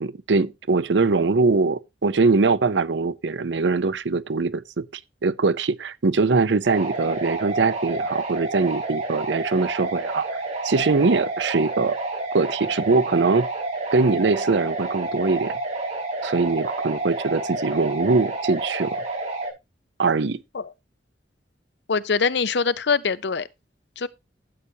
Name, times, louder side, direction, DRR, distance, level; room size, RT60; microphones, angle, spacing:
voice 1, 0.0-4.8 5.2-12.0 12.3-13.5 13.9-15.5 16.2-19.0 20.0-20.4, right 4 dB, 75° right, 0.6 m, -22 dB
sound 1, 6.6-19.5, right 2 dB, 40° right, 5.5 m, -29 dB
voice 2, 21.9-23.5 24.0-24.1, left 5 dB, 70° left, 0.7 m, -23 dB
12.5 x 8.4 x 2.8 m
head